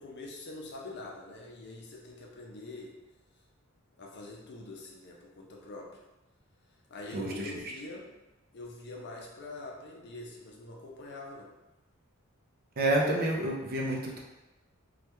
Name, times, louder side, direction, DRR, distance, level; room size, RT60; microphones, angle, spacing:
voice 1, 0.0-2.9 4.0-6.0 6.9-8.0 8.5-11.5, left 2 dB, 50° left, -1 dB, 0.5 m, -44 dB
voice 2, 7.1-7.5 12.8-14.2, right 1 dB, 45° right, -1 dB, 0.5 m, -29 dB
3.2 x 2.3 x 3.0 m, 1.0 s
head